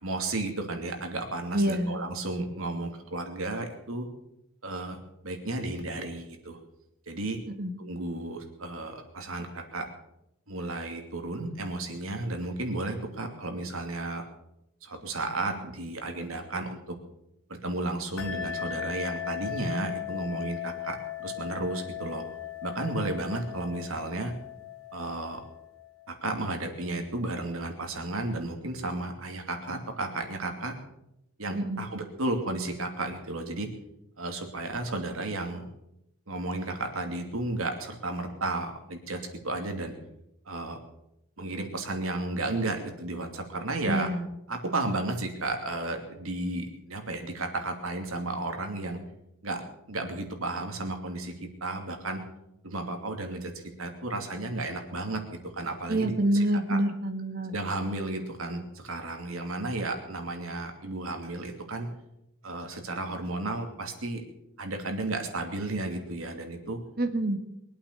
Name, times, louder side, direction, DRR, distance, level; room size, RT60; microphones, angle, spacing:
voice 1, 0.0-4.1 4.6-5.0 5.2-6.6 7.1-7.4 7.8-9.9 10.5-14.2 14.8-16.9 17.6-22.2 22.6-24.3 24.9-25.4 26.1-30.7 31.4-33.7 34.2-35.7 36.3-39.2 39.4-39.9 40.5-40.8 41.4-44.1 44.5-49.0 49.4-49.6 49.9-51.3 51.6-52.2 52.6-56.8 57.5-61.9 62.4-64.2 64.6-66.8, right 2 dB, 80° right, 4 dB, 2.8 m, -33 dB
voice 2, 1.5-2.0 7.6-7.8 31.5-31.9 43.9-44.3 55.9-57.5 67.0-67.4, right 1 dB, 45° right, 7 dB, 1.7 m, -27 dB
sound 1, 18.2-26.3, left 11 dB, 85° left, 1.5 m, -38 dB
22.5 x 8.6 x 6.8 m, 0.82 s
head